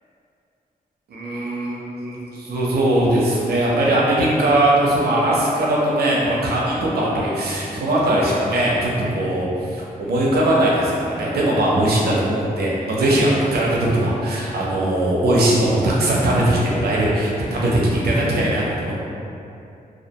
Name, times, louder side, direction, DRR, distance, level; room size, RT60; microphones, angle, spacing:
voice 1, 1.1-18.9, right 1 dB, 85° right, -5 dB, 0.5 m, -20 dB
2.3 x 2.2 x 2.8 m, 2.7 s
wide cardioid pair, 165°, 16 cm